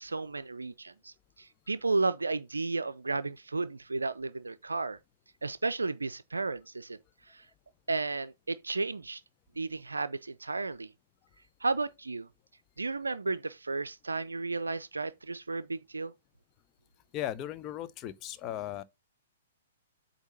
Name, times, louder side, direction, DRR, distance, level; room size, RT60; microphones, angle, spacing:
voice 1, 0.0-5.0 5.4-7.0 7.3-7.5 7.9-9.2 9.6-10.9 11.6-12.3 12.8-16.1, right 3 dB, 75° right, 0.5 m, -33 dB
voice 2, 17.1-18.8, left 12 dB, 25° left, 0.7 m, -37 dB
8.1 x 2.8 x 5.7 m
figure-of-eight pair, 115°, 0 cm